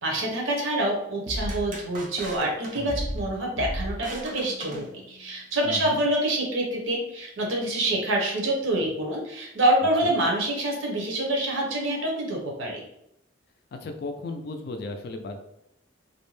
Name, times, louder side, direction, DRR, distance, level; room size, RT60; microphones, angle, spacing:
voice 1, 0.0-12.8, right 1 dB, 75° right, -1 dB, 0.8 m, -26 dB
sound 1, 1.3-5.4, equal, 40° right, 0.5 m, -35 dB
voice 2, 5.6-6.0 10.0-10.1 13.7-15.4, left 3 dB, 50° left, 5 dB, 0.3 m, -35 dB
2.6 x 2.1 x 3.0 m, 0.76 s
head